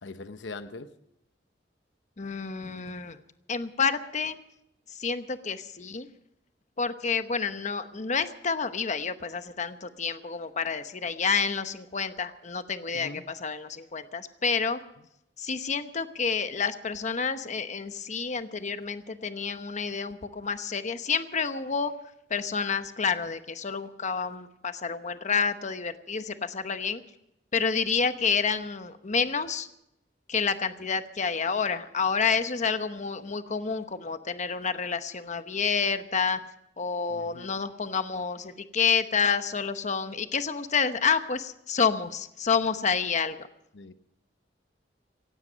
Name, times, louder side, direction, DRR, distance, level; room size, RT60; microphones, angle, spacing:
voice 1, 0.0-0.9 12.9-13.3 37.1-37.5 43.7-43.9, left 3 dB, 80° left, 0.9 m, -41 dB
voice 2, 2.2-3.2 3.5-4.4 4.9-6.1 6.8-14.8 15.4-21.9 22.3-27.0 27.5-29.7 30.3-36.4 36.8-43.5, left 5 dB, 40° left, 0.9 m, -29 dB
17.0 x 16.0 x 5.2 m
head